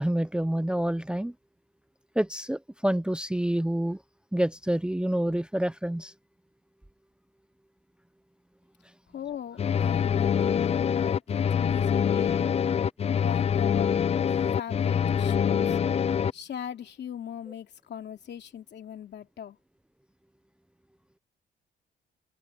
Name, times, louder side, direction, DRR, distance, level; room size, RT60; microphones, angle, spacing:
voice 1, 0.0-1.3 2.2-4.0 4.3-6.1, right 1 dB, 5° right, 0.8 m, -27 dB
voice 2, 9.1-12.5 13.1-13.9 14.5-15.8 16.3-19.6, left 9 dB, 60° left, 3.0 m, -39 dB
sound 1, 9.6-16.3, left 8 dB, 30° left, 0.4 m, -25 dB
cardioid pair, 90°, 20 cm